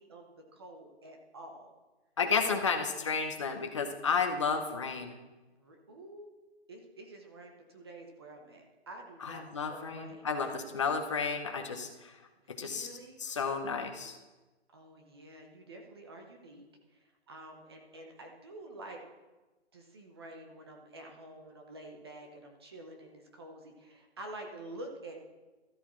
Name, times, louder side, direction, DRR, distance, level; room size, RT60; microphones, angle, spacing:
voice 1, 0.0-1.8 5.6-6.3 6.7-9.4 9.7-10.8 12.4-13.2 14.7-19.0 19.7-25.2, right 1 dB, 25° right, 2 dB, 0.9 m, -49 dB
voice 2, 2.2-5.2 9.2-12.2 12.6-12.9 13.2-14.2, left 5 dB, 30° left, 5 dB, 0.9 m, -32 dB
13.0 x 12.5 x 3.2 m, 1.2 s
hypercardioid pair, 170°, 32 cm